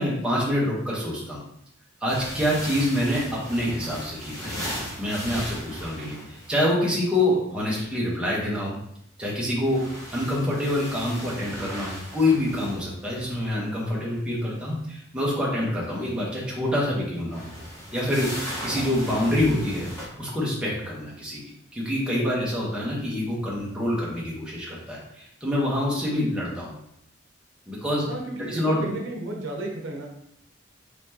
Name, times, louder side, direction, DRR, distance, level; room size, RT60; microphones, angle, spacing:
voice 1, 0.0-1.4 2.0-4.6 5.0-8.7 9.2-9.8 10.1-17.4 17.9-19.9 20.2-21.4 21.7-26.7 27.7-28.1 28.5-28.8, left 1 dB, 5° right, -5 dB, 1.0 m, -26 dB
sound 1, 2.1-6.6 9.4-13.5 17.2-20.1, equal, 15° left, 1.4 m, -37 dB
voice 2, 28.1-30.1, right 2 dB, 70° right, 0 dB, 0.8 m, -33 dB
4.2 x 3.2 x 2.8 m, 0.74 s
head